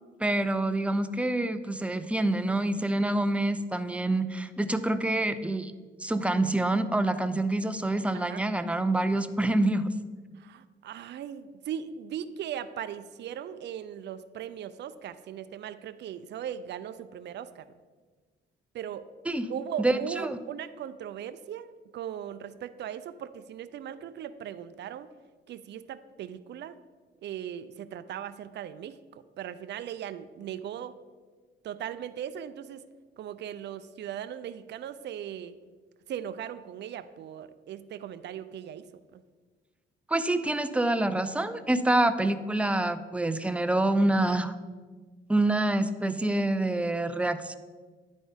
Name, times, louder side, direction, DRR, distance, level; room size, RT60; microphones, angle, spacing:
voice 1, 0.2-5.7 6.0-9.9 19.3-19.5 19.8-20.4 40.1-44.5 45.3-47.5, right 2 dB, 5° right, 11 dB, 0.5 m, -26 dB
voice 2, 10.4-17.6 18.7-19.1 19.5-25.1 25.5-26.8 27.2-30.9 31.6-32.8 33.2-35.5 36.1-38.8 39.1-39.2, right 9 dB, 60° right, 13 dB, 0.5 m, -38 dB
10.0 x 4.2 x 5.1 m, 1.4 s
cardioid pair, 90°, 20 cm